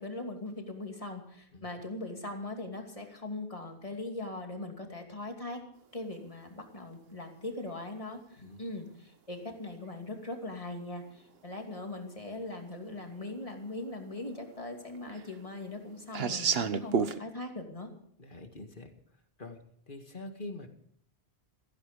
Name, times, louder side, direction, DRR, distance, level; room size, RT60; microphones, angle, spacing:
voice 1, 0.0-5.6 5.9-17.9, left 2 dB, 30° left, 3 dB, 2.8 m, -40 dB
sound 1, 10.6-10.7 12.0-12.1 12.6-12.7 12.9-13.6 13.9-17.2, right 6 dB, 65° right, 1.2 m, -31 dB
voice 2, 18.2-18.9 19.4-19.6 19.9-20.7, left 2 dB, 50° left, 5 dB, 2.2 m, -44 dB
16.0 x 15.5 x 5.3 m, 0.64 s
omnidirectional pair, 1.1 m